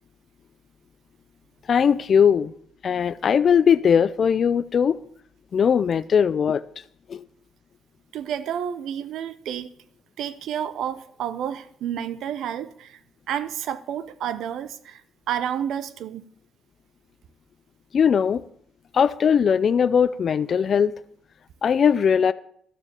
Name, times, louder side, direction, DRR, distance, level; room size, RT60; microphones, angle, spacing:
voice 1, 1.7-2.5 2.8-5.0 5.5-6.6 7.1-7.2 17.9-18.4 18.9-20.9 21.6-22.3, left 7 dB, 50° left, 0.4 m, -19 dB
voice 2, 8.1-9.7 10.2-13.0 13.3-15.0 15.3-16.3, right 9 dB, 80° right, 0.7 m, -30 dB
12.0 x 7.1 x 6.7 m
cardioid pair, 90°, 0 cm